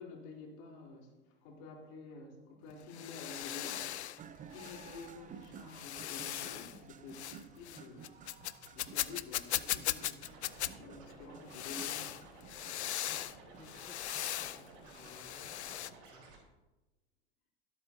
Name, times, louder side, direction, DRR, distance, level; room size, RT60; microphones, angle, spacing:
voice 1, 0.0-3.9 4.2-8.4 8.7-10.3 10.8-12.2, left 3 dB, 55° left, -1 dB, 3.2 m, -50 dB
sound 1, 2.7-4.2 4.5-5.1 5.7-6.8 7.1-7.4 7.6-10.7 11.5-13.4 13.6-14.6 14.9-15.9, left 12 dB, 80° left, 0.6 m, -38 dB
sound 2, 4.2-16.0, right 7 dB, 25° right, 0.7 m, -55 dB
Scratching (performance technique), 10.2-16.4, right 3 dB, 55° right, 4.0 m, -55 dB
voice 2, 12.7-16.5, left 4 dB, 15° left, 4 dB, 0.8 m, -62 dB
18.0 x 8.4 x 2.7 m, 1.1 s
hypercardioid pair, 90°, 33 cm